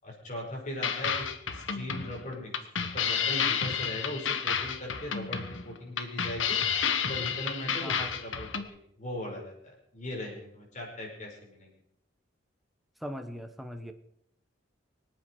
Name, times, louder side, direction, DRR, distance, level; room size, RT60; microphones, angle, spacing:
voice 1, 0.0-1.2 1.5-2.5 2.8-6.6 7.0-11.7, left 1 dB, 40° left, -1 dB, 5.5 m, -39 dB
sound 1, 0.8-8.6, left 7 dB, 80° left, 1.3 m, -30 dB
voice 2, 7.8-8.1 13.0-13.9, equal, ahead, 5 dB, 1.1 m, -39 dB
24.5 x 9.0 x 4.8 m, 0.73 s
head